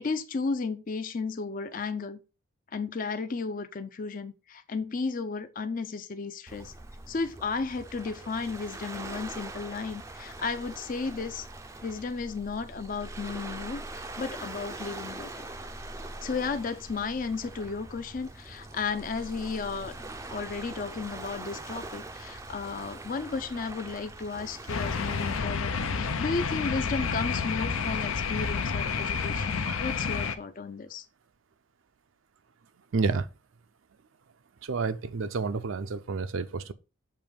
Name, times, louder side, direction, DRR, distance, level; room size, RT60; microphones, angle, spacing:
voice 1, 0.0-2.2 2.7-6.7 7.1-11.5 11.8-15.5 16.2-20.0 20.3-31.1, left 4 dB, 40° left, 0.4 m, -34 dB
Waves surf, 6.5-25.4, right 2 dB, 15° right, 0.4 m, -42 dB
sound 1, 24.7-30.4, left 5 dB, 90° left, 0.7 m, -30 dB
voice 2, 32.9-33.3 34.6-36.7, right 4 dB, 70° right, 0.5 m, -30 dB
6.8 x 3.1 x 5.1 m
head